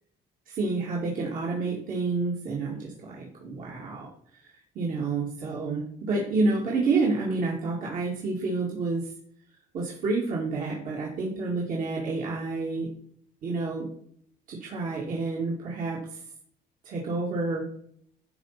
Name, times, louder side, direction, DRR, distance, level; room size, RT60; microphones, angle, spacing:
voice 1, 0.5-9.1 9.7-12.9 13.4-13.9 14.5-16.2 16.8-17.7, right 3 dB, 55° right, -4 dB, 2.3 m, -29 dB
12.0 x 4.1 x 5.6 m, 0.65 s
cardioid pair, 110°, 17 cm